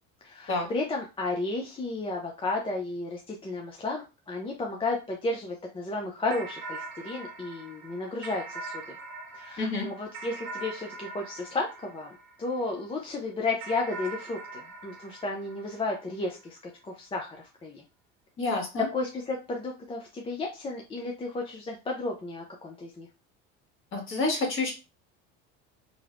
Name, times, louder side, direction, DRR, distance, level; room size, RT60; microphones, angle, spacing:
voice 1, 0.2-9.0 9.3-16.6 16.9-17.8 18.9-23.1, left 2 dB, 20° left, 0 dB, 0.5 m, -33 dB
sound 1, 6.3-12.9 13.6-16.4, right 3 dB, 70° right, 0.7 m, -42 dB
voice 2, 9.6-9.9 18.4-18.9 23.9-24.7, left 3 dB, 40° left, 1 dB, 1.3 m, -28 dB
3.1 x 2.0 x 2.4 m, 0.30 s
supercardioid pair, 90°, 31 cm